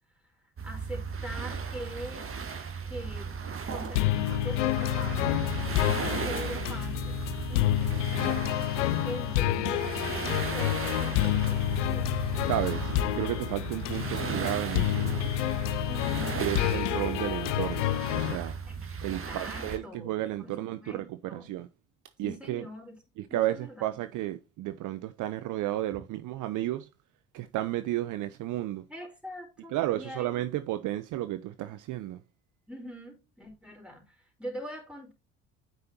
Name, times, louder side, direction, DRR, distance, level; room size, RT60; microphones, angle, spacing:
voice 1, 0.6-2.2 2.9-5.5 6.1-7.2 7.5-8.0 9.0-9.9 10.5-12.2 15.9-16.8 19.3-21.5 22.2-23.0 23.3-23.9 25.9-26.0 28.9-30.3 32.7-35.1, equal, 5° right, 4.5 m, -43 dB
sound 1, 0.6-19.8, right 5 dB, 35° right, 1.9 m, -36 dB
sound 2, 4.0-18.4, left 15 dB, 80° left, 0.6 m, -29 dB
voice 2, 12.4-15.4 16.4-18.5 19.0-21.7 22.2-22.6 23.2-26.9 27.3-28.9 29.7-32.2, right 14 dB, 55° right, 0.7 m, -33 dB
9.1 x 5.6 x 2.8 m
hypercardioid pair, 65°, 36 cm